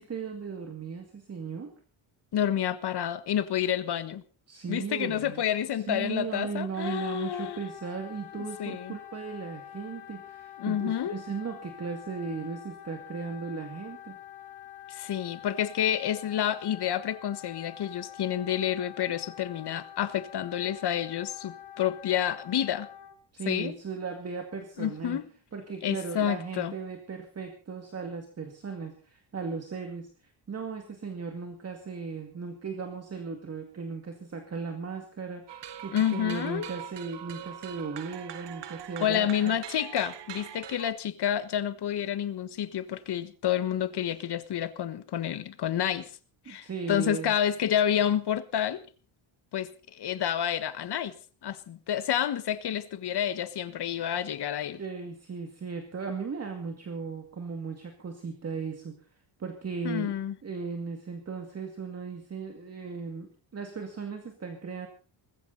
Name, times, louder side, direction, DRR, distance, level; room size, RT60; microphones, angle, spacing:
voice 1, 0.0-1.7 4.5-5.4 5.7-14.2 23.3-25.2 25.5-39.6 46.5-47.4 54.8-59.0 59.4-60.1 60.4-64.9, right 5 dB, 30° right, 2.2 m, -37 dB
voice 2, 2.3-4.2 4.7-7.6 8.3-8.9 10.6-11.1 14.9-22.9 23.5-23.7 24.8-25.2 25.8-26.7 35.9-36.7 39.0-46.1 46.5-48.8 49.5-51.2 51.4-54.8 59.8-60.3, left 10 dB, 55° left, 1.4 m, -29 dB
Wind instrument woodwind instrument, 7.3-23.2, left 11 dB, 90° left, 2.4 m, -46 dB
sound 1, 35.5-40.9, right 10 dB, 60° right, 1.2 m, -42 dB
20.0 x 15.0 x 4.0 m
cardioid pair, 145°, 48 cm